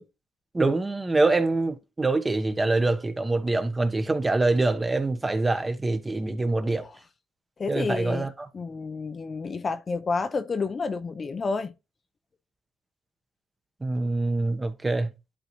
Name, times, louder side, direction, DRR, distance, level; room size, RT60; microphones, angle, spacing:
voice 1, 0.5-6.9 7.7-8.5 13.8-15.1, right 2 dB, 20° right, 1.1 m, -25 dB
voice 2, 7.6-8.3 8.5-11.7, left 4 dB, 40° left, 0.7 m, -30 dB
11.5 x 4.0 x 3.1 m
cardioid pair, 90°, 0 cm